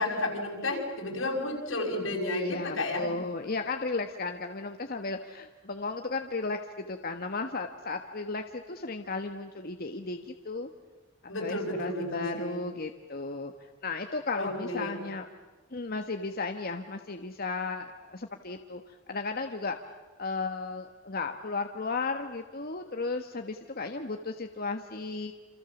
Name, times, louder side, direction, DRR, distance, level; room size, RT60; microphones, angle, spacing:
voice 1, 0.0-3.1 11.3-12.6 14.4-15.0, left 2 dB, 90° left, 1 dB, 5.9 m, -32 dB
voice 2, 2.3-10.7 11.4-15.3 15.7-19.8 20.2-25.3, left 3 dB, 50° left, 5 dB, 1.3 m, -35 dB
28.5 x 27.0 x 7.2 m, 1.2 s
head